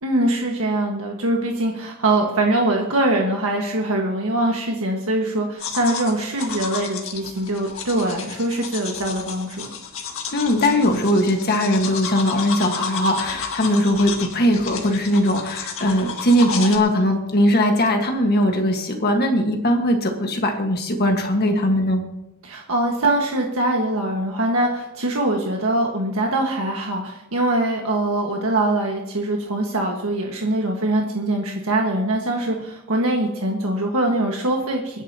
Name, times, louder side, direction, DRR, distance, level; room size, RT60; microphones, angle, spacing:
voice 1, 0.0-9.7 22.4-35.0, right 1 dB, 75° right, 0 dB, 1.6 m, -23 dB
sound 1, 5.6-16.8, left 6 dB, 65° left, 1.9 m, -32 dB
voice 2, 10.3-22.0, left 1 dB, 50° left, 2 dB, 1.6 m, -20 dB
27.5 x 10.0 x 2.9 m, 0.89 s
head